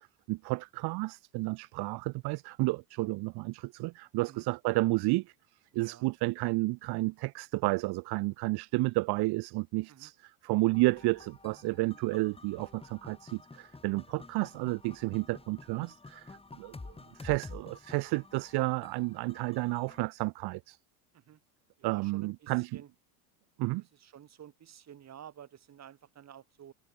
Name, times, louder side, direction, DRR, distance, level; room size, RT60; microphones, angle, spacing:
voice 1, 0.0-5.3 5.7-20.8 21.8-22.8 23.6-23.8, right 22 dB, 55° right, 1.3 m, -31 dB
voice 2, 5.7-6.1 9.9-10.1 21.1-21.4 21.8-22.9 23.9-26.7, right 9 dB, 35° right, 4.4 m, -51 dB
sound 1, 10.7-20.0, left 3 dB, 10° left, 7.3 m, -50 dB
supercardioid pair, 110°, 48 cm